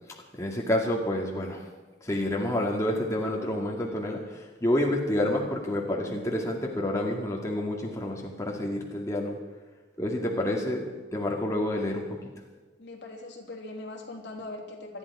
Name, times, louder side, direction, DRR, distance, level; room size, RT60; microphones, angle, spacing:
voice 1, 0.4-1.6 2.0-9.4 10.0-10.8 11.1-12.1, left 1 dB, 15° left, -2 dB, 2.2 m, -28 dB
voice 2, 12.8-15.0, left 2 dB, 65° left, 0 dB, 3.2 m, -40 dB
20.0 x 13.5 x 4.9 m, 1.3 s
head